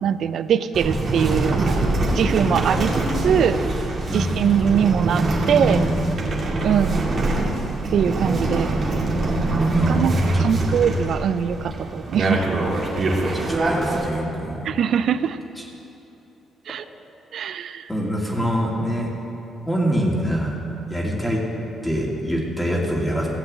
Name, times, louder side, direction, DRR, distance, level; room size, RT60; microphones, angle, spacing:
voice 1, 0.0-1.8 2.1-2.9 3.2-3.6 4.1-5.8 6.6-7.0 7.9-8.7 9.9-12.6 14.6-15.4 16.7-16.8 17.3-17.9, right 8 dB, 65° right, 13 dB, 0.5 m, -22 dB
sound 1, 0.7-14.1, right 2 dB, 50° right, 2.5 m, -23 dB
voice 2, 2.4-2.9 4.1-4.4 9.7-10.8 13.3-14.7 17.9-19.1 19.6-20.6 20.9-21.4 21.8-23.3, equal, 10° left, -3 dB, 2.6 m, -25 dB
15.5 x 7.8 x 7.6 m, 2.9 s
cardioid pair, 90°, 0 cm